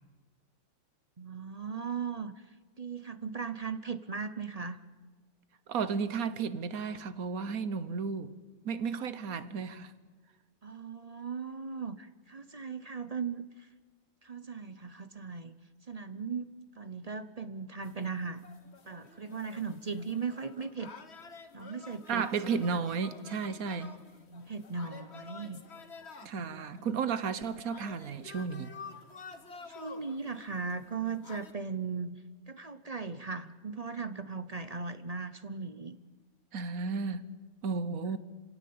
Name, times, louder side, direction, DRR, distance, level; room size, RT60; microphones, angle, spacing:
voice 1, 1.2-4.8 10.6-13.7 14.2-15.5 15.9-18.4 18.8-20.9 21.5-22.8 23.9-24.0 24.3-25.6 26.4-26.5 26.8-27.0 29.7-36.0, right 5 dB, 35° right, 0.7 m, -38 dB
voice 2, 5.7-8.3 8.6-9.9 22.1-24.0 26.2-28.7 36.5-37.3 37.6-38.2, right 5 dB, 80° right, 1.5 m, -33 dB
sound 1, 17.8-31.5, left 5 dB, 50° left, 1.7 m, -51 dB
26.5 x 17.0 x 8.6 m
omnidirectional pair, 1.5 m